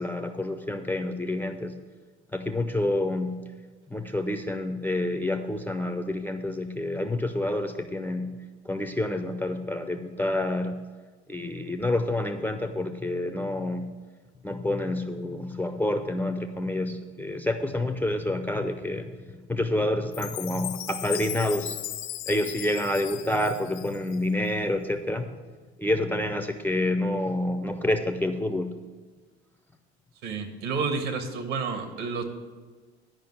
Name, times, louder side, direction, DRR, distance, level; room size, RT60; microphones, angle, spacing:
voice 1, 0.0-1.8 2.3-3.4 3.9-8.4 8.6-10.8 11.3-13.9 14.4-19.1 19.5-21.8 22.3-25.3 25.8-28.7, left 1 dB, 5° left, 8 dB, 0.5 m, -28 dB
Chime, 20.1-24.3, left 14 dB, 65° left, 0.7 m, -37 dB
voice 2, 30.2-32.2, right 4 dB, 60° right, 6 dB, 1.6 m, -30 dB
10.5 x 5.3 x 7.8 m, 1.4 s
hypercardioid pair, 75°, 33 cm